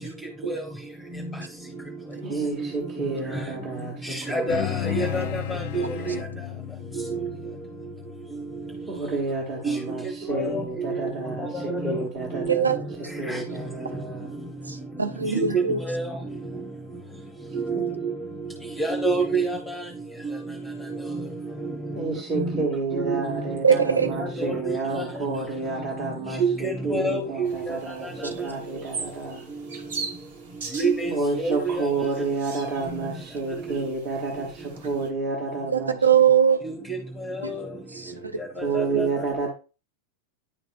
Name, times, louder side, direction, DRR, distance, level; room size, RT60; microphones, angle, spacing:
voice 1, 2.2-5.3 5.7-6.3 8.9-12.8 13.2-14.3 17.7-17.8 21.9-29.5 31.1-36.0 38.6-39.5, right 3 dB, 35° right, 1.6 m, -30 dB
voice 2, 4.0-6.2 6.9-7.5 9.6-11.0 11.4-12.1 12.3-13.4 15.3-16.2 17.5-18.1 18.8-19.9 21.1-21.2 21.6-21.8 22.3-25.0 26.4-28.5 30.7-31.9 32.9-33.0 33.6-33.8 36.6-37.7 38.6-39.1, right 3 dB, ahead, 0.9 m, -28 dB
sound 1, 4.5-9.2, left 15 dB, 50° left, 0.3 m, -33 dB
voice 3, 14.7-15.8 23.6-24.1 35.7-36.6 37.4-37.5 38.0-38.3, right 7 dB, 80° right, 0.6 m, -21 dB
sound 2, 27.5-35.1, right 5 dB, 55° right, 1.1 m, -40 dB
10.0 x 4.0 x 2.6 m
figure-of-eight pair, 90°, 0 cm